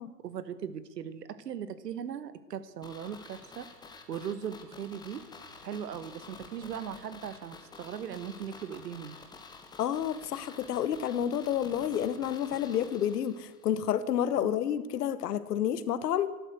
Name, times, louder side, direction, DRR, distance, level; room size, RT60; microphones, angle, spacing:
voice 1, 0.2-3.7 4.1-5.3 5.6-9.2 14.4-14.6, right 8 dB, 80° right, 14 dB, 1.3 m, -39 dB
sound 1, 2.8-13.8 14.0-14.1, left 4 dB, 10° left, 1.1 m, -50 dB
voice 2, 9.8-16.3, left 10 dB, 75° left, 15 dB, 1.0 m, -30 dB
12.5 x 11.5 x 7.9 m, 1.1 s
hypercardioid pair, 140°, 48 cm